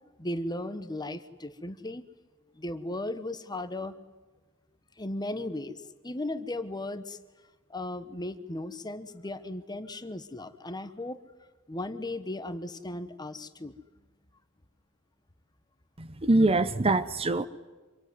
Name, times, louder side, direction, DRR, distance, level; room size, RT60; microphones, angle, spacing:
voice 1, 0.2-2.0 2.5-4.0 5.0-5.8 6.0-7.2 7.7-11.2 11.7-13.7, left 1 dB, 20° left, 11 dB, 1.2 m, -36 dB
voice 2, 16.0-17.5, right 2 dB, 30° right, 14 dB, 0.9 m, -24 dB
26.0 x 23.0 x 9.6 m, 1.2 s
head